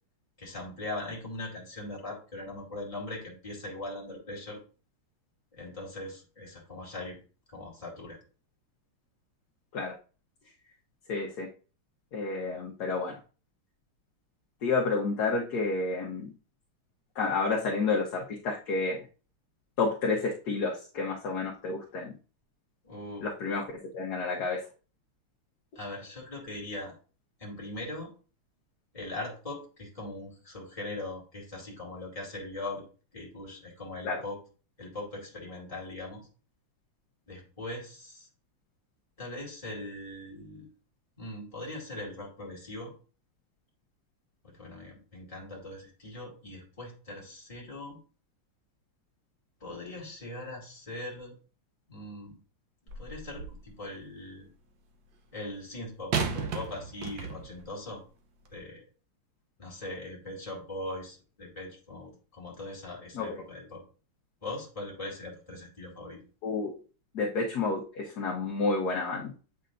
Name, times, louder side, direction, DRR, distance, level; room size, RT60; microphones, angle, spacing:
voice 1, 0.4-4.6 5.5-7.2 7.5-8.2 22.8-23.3 25.8-26.9 27.4-28.1 28.9-32.8 33.1-34.4 34.8-36.2 37.3-38.3 39.2-40.6 41.2-42.9 44.4-48.0 49.6-51.4 51.9-52.4 53.0-54.5 55.3-58.0 58.5-58.8 59.6-63.8 64.4-66.2, left 2 dB, 15° left, -3 dB, 2.2 m, -40 dB
voice 2, 11.1-11.5 12.1-13.2 14.6-16.3 17.1-19.0 19.8-22.2 23.2-23.7 23.9-24.6 34.0-34.2 63.1-63.4 66.4-66.7 67.1-69.3, left 4 dB, 55° left, -2 dB, 1.3 m, -30 dB
sound 1, 52.9-53.7 56.1-57.7 58.5-58.6, right 5 dB, 65° right, 1.4 m, -34 dB
7.9 x 5.5 x 2.5 m, 0.36 s
omnidirectional pair, 2.3 m